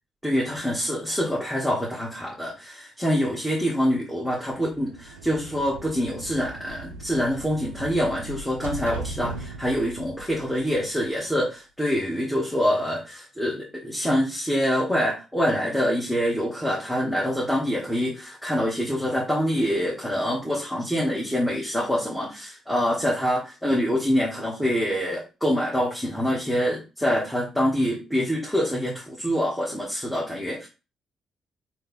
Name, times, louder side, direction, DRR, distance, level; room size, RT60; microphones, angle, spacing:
voice 1, 0.2-30.7, equal, 5° left, -4 dB, 1.4 m, -25 dB
sound 1, 4.6-11.3, right 2 dB, 85° right, 0.4 m, -39 dB
3.1 x 2.9 x 4.1 m, 0.30 s
figure-of-eight pair, 40°, 0 cm